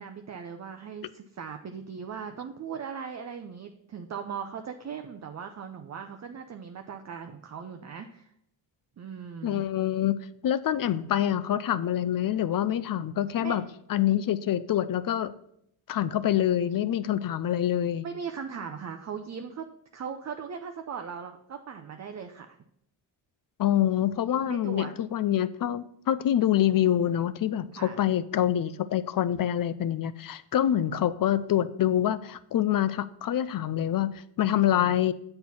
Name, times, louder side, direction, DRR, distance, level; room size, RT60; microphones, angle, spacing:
voice 1, 0.0-8.3 9.0-9.7 13.4-13.6 18.0-19.6 19.9-22.6 24.4-24.9 27.7-28.1 34.5-35.0, right 6 dB, 35° right, 6 dB, 0.5 m, -39 dB
voice 2, 9.4-13.6 13.9-15.3 15.9-18.1 23.6-35.1, left 11 dB, 45° left, 15 dB, 0.4 m, -26 dB
7.4 x 4.4 x 5.8 m, 0.74 s
cardioid pair, 90°, 49 cm